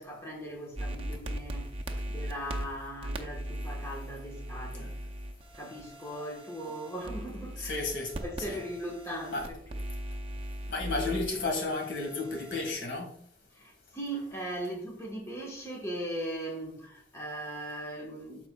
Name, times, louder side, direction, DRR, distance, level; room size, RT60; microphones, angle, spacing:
voice 1, 0.0-1.7 2.1-4.9 5.5-7.8 8.2-9.6 13.5-18.5, right 1 dB, 15° left, -1 dB, 1.3 m, -39 dB
sound 1, 0.8-12.7, right 1 dB, 30° right, 0.6 m, -39 dB
voice 2, 7.6-8.1 8.5-8.6 9.3-9.5 10.7-13.1, left 3 dB, 80° left, 2 dB, 1.7 m, -32 dB
12.5 x 4.3 x 2.3 m, 0.66 s
head